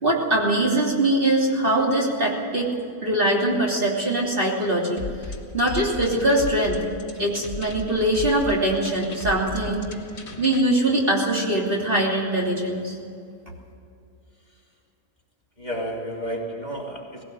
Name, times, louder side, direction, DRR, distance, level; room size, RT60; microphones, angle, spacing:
voice 1, 0.0-2.7 3.0-5.0 5.5-6.8 7.2-9.9 10.4-13.0, right 1 dB, 35° right, -3 dB, 3.3 m, -22 dB
sound 1, 5.0-10.6, left 3 dB, 45° left, 1.9 m, -36 dB
voice 2, 15.6-17.2, equal, 30° left, -2 dB, 3.2 m, -32 dB
19.0 x 17.5 x 8.0 m, 2.5 s
omnidirectional pair, 1.6 m